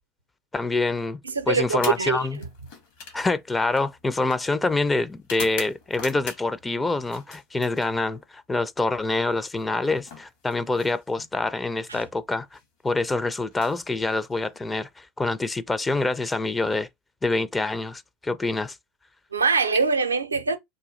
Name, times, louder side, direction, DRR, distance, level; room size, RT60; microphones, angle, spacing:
voice 1, 0.5-1.2 1.5-2.4 3.1-12.6 12.8-16.9 17.2-18.8, left 3 dB, 15° left, 0.4 m, -26 dB
voice 2, 1.2-2.5 19.3-20.6, right 5 dB, 90° right, 0.5 m, -23 dB
sound 1, 1.7-6.7 7.0-8.3 9.5-11.3 12.4-12.6 13.4-14.6, left 5 dB, 65° left, 1.6 m, -42 dB
3.7 x 2.3 x 3.1 m
figure-of-eight pair, 80°, 0 cm